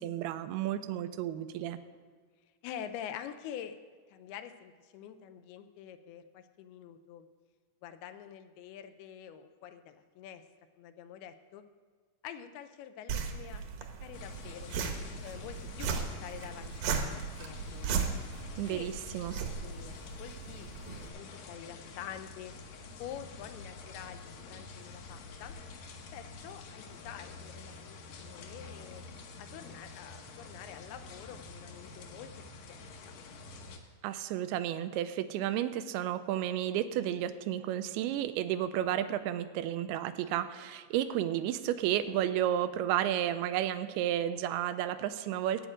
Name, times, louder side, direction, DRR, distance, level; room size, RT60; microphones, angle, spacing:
voice 1, 0.0-1.8 18.6-19.4 34.0-45.7, right 11 dB, 85° right, 11 dB, 2.5 m, -32 dB
voice 2, 2.6-3.8 4.1-7.3 7.8-10.4 10.8-11.6 12.2-13.7 14.0-14.8 15.2-18.0 18.7-18.9 19.6-22.5 23.0-25.6 26.1-29.0 29.4-32.3 32.7-33.1, left 9 dB, 85° left, 10 dB, 2.6 m, -46 dB
sound 1, 13.1-21.1, right 6 dB, 70° right, 2.2 m, -37 dB
sound 2, 14.1-33.8, left 3 dB, 65° left, 2.2 m, -48 dB
14.5 x 8.7 x 5.0 m, 1.5 s
omnidirectional pair, 4.5 m